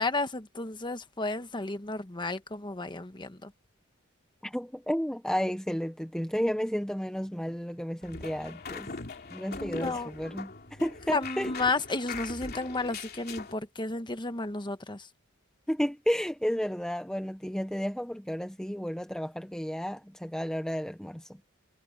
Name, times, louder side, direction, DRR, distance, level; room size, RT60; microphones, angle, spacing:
voice 1, 0.0-3.5 9.6-10.1 11.1-15.1, left 3 dB, 25° left, 1.3 m, -32 dB
voice 2, 4.4-8.9 9.3-11.5 15.7-21.4, equal, 5° left, 0.9 m, -32 dB
sound 1, 8.0-13.5, left 4 dB, 50° left, 2.9 m, -41 dB
head